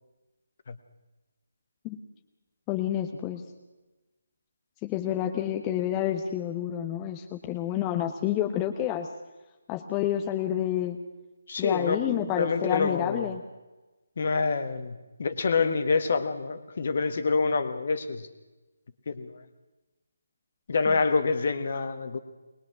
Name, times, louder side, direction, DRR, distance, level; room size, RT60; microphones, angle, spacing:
voice 1, 2.7-3.4 4.8-9.1 9.7-11.0 11.6-13.4 20.9-21.0, left 11 dB, 15° left, 4 dB, 1.1 m, -29 dB
voice 2, 11.5-13.3 14.2-18.3 19.1-19.4 20.7-22.2, left 4 dB, 45° left, 10 dB, 1.6 m, -27 dB
21.5 x 21.0 x 6.3 m, 1.1 s
figure-of-eight pair, 150°, 0 cm